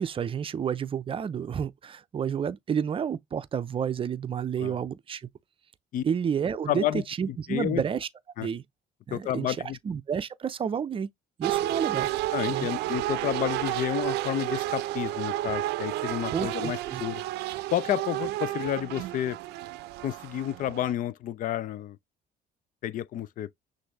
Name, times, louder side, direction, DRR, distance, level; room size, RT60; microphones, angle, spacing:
voice 1, 0.0-5.3 6.0-8.1 8.4-8.6 9.1-9.6 9.8-11.1 11.4-12.1 12.5-12.7 16.3-17.0, right 7 dB, 30° right, 0.5 m, -30 dB
voice 2, 6.7-7.0 7.5-7.8 8.4-8.5 9.1-9.8 12.3-17.2 17.7-19.4 20.0-22.0 22.8-23.5, left 12 dB, 55° left, 0.5 m, -30 dB
sound 1, 11.4-20.9, right 15 dB, 85° right, 0.5 m, -31 dB
6.2 x 2.6 x 3.0 m
cardioid pair, 110°, 17 cm